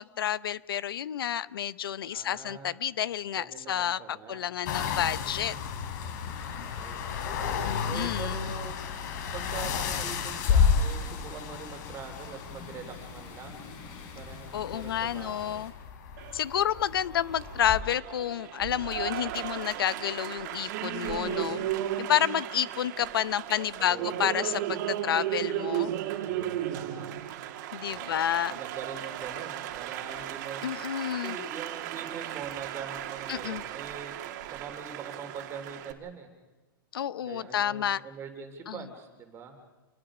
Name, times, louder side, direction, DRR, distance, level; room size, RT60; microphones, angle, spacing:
voice 1, 0.0-5.6 7.6-8.5 14.5-15.7 16.3-21.7 22.0-25.9 27.7-28.6 30.6-31.3 33.3-33.6 36.9-38.0 38.7-38.8, left 10 dB, 90° left, 18 dB, 0.8 m, -30 dB
voice 2, 2.1-2.7 3.3-4.4 6.4-7.0 7.8-8.9 9.3-13.6 14.1-15.7 23.8-24.2 26.2-27.2 27.9-30.6 31.1-36.3 37.2-39.6, right 6 dB, 20° right, 4 dB, 3.3 m, -43 dB
sound 1, 4.7-17.8, left 6 dB, 55° left, 3.5 m, -32 dB
sound 2, 5.3-15.7, left 5 dB, 35° left, 5.3 m, -47 dB
Applause, 16.2-35.9, right 12 dB, 50° right, 2.1 m, -35 dB
28.0 x 21.5 x 5.0 m, 1.2 s
hypercardioid pair, 150°, 12 cm